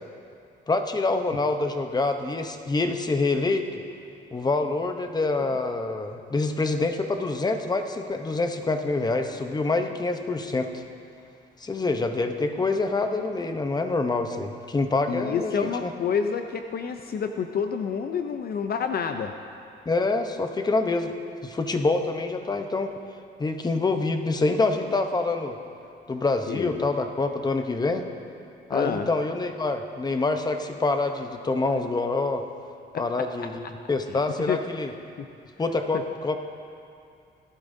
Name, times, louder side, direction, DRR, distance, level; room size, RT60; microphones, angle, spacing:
voice 1, 0.7-3.6 4.3-10.8 11.6-15.9 19.9-21.1 21.4-22.9 23.4-25.6 26.1-28.1 28.7-32.4 33.0-33.6 33.9-34.9 35.6-36.4, left 3 dB, 20° left, 6 dB, 0.8 m, -26 dB
voice 2, 15.1-19.3 26.5-26.9 28.7-29.1 32.9-33.5 34.1-34.6 35.2-35.3 35.9-36.0, left 6 dB, 50° left, 6 dB, 0.6 m, -29 dB
17.5 x 12.0 x 2.7 m, 2.5 s
cardioid pair, 90°, 20 cm